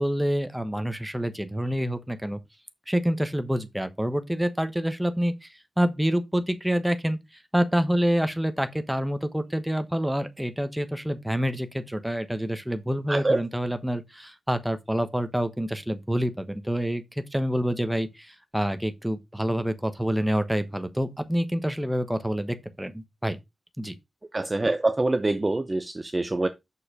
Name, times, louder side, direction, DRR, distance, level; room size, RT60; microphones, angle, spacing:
voice 1, 0.0-2.4 2.9-23.4 23.8-23.9, equal, 5° right, 1.1 m, -27 dB
voice 2, 13.1-13.4 24.3-26.5, right 2 dB, 25° right, 0.6 m, -25 dB
6.6 x 5.5 x 4.9 m
wide cardioid pair, 120°, 0 cm